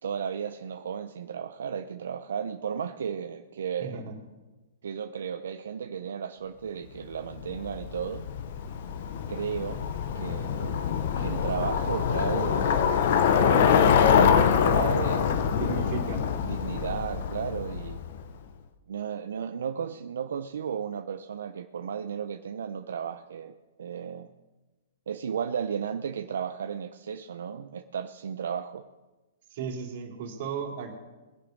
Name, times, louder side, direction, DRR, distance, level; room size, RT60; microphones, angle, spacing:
voice 1, 0.0-4.0 4.8-8.2 9.3-9.8 10.1-10.8 11.2-13.1 13.3-15.5 16.4-18.0 18.9-23.5 23.8-24.3 25.1-28.8, right 7 dB, 75° right, 7 dB, 0.8 m, -34 dB
voice 2, 3.8-4.1 15.5-16.2 29.5-30.9, right 6 dB, 45° right, 1 dB, 3.3 m, -35 dB
Bicycle, 7.3-18.2, left 7 dB, 50° left, 1.0 m, -25 dB
21.0 x 7.1 x 5.3 m, 1.2 s
hypercardioid pair, 160°, 0 cm